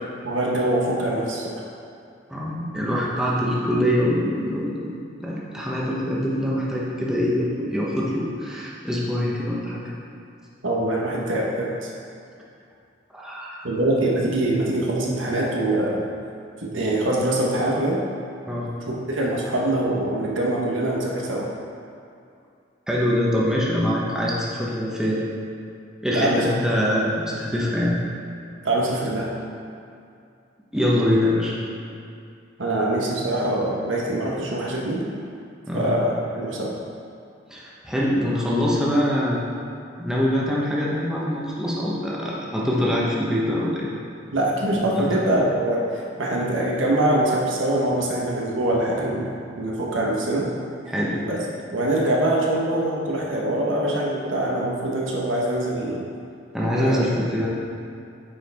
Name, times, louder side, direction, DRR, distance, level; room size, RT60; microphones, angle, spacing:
voice 1, 0.2-1.5 10.6-11.9 13.6-16.0 16.6-18.0 18.9-21.5 26.1-26.4 28.6-29.3 32.6-35.0 35.7-36.7 44.3-50.5 51.3-51.4 51.7-56.1 56.8-57.0, right 1 dB, 75° right, -3 dB, 1.2 m, -23 dB
voice 2, 2.3-9.8 13.1-13.6 18.5-18.7 22.9-25.2 26.0-28.0 30.7-31.5 35.7-35.9 37.5-39.5 40.0-43.9 44.7-45.1 50.9-51.2 56.5-57.5, equal, 5° right, -6 dB, 1.0 m, -24 dB
8.9 x 4.8 x 3.5 m, 2.4 s
head